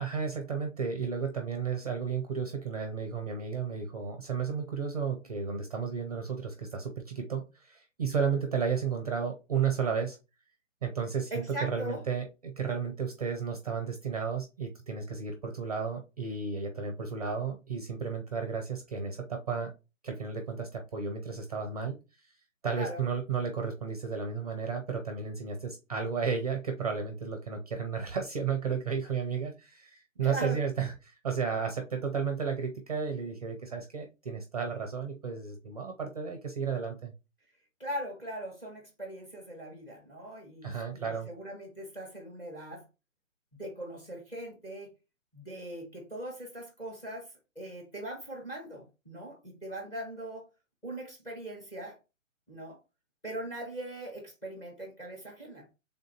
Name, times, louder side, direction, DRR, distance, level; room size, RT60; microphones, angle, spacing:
voice 1, 0.0-10.2 10.8-19.7 20.0-22.0 22.6-37.1 40.6-41.3, right 6 dB, 30° right, 0.5 m, -33 dB
voice 2, 11.3-12.0 22.7-23.0 30.2-30.6 37.8-42.8 43.5-44.9 45.3-47.3 47.6-50.4 50.8-52.0 52.5-52.8 53.2-55.7, right 1 dB, 10° left, 0.7 m, -40 dB
3.5 x 2.5 x 4.0 m
figure-of-eight pair, 140°, 40 cm